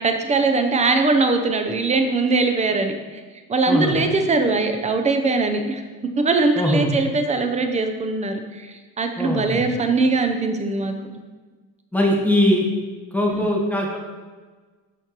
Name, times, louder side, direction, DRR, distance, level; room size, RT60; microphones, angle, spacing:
voice 1, 0.0-3.2 3.5-5.8 6.1-10.9 13.3-13.5, right 3 dB, 20° right, 5 dB, 0.6 m, -21 dB
voice 2, 6.6-6.9 9.2-9.6 11.9-12.6 13.1-14.0, left 1 dB, 5° left, -1 dB, 1.2 m, -20 dB
12.5 x 4.4 x 3.0 m, 1.4 s
cardioid pair, 145°, 33 cm